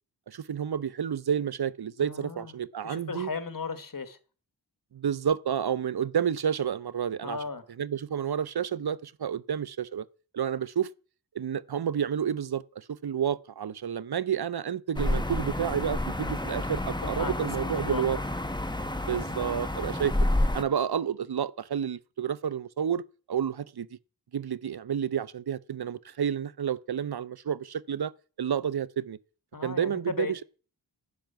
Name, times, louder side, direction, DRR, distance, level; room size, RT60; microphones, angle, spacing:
voice 1, 0.3-3.3 4.9-7.4 7.8-10.0 10.3-10.9 11.3-18.2 19.1-20.1 20.5-23.0 23.3-23.9 24.3-28.1 28.4-29.2 29.6-30.4, right 8 dB, 65° right, 0.6 m, -30 dB
voice 2, 2.0-2.5 2.8-4.2 7.2-7.6 16.8-18.0 29.5-30.4, left 4 dB, 55° left, 1.5 m, -36 dB
sound 1, 15.0-20.6, left 1 dB, 10° left, 1.2 m, -29 dB
10.5 x 6.6 x 9.1 m
wide cardioid pair, 65°, 40 cm